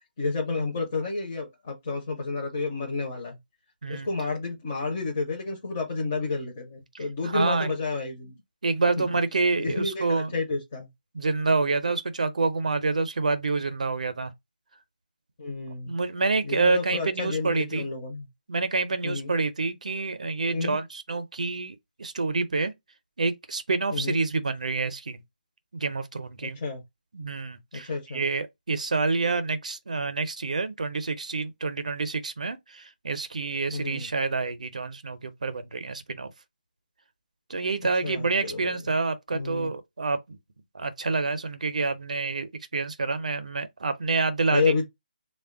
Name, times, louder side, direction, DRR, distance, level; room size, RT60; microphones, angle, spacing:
voice 1, 0.2-3.4 3.9-8.4 9.6-10.9 15.4-15.9 16.4-18.3 19.0-19.3 20.5-20.8 23.9-24.2 26.4-26.8 27.9-28.2 33.7-34.1 38.0-38.7 39.3-39.7 44.5-44.8, left 4 dB, 15° left, 0.4 m, -30 dB
voice 2, 7.2-7.7 8.6-10.4 11.1-14.3 15.9-17.9 18.5-22.7 23.2-25.2 25.7-26.6 27.1-36.3 37.5-40.4 40.7-44.6, right 3 dB, 50° right, 0.5 m, -27 dB
3.3 x 2.1 x 3.5 m
hypercardioid pair, 175°, 5 cm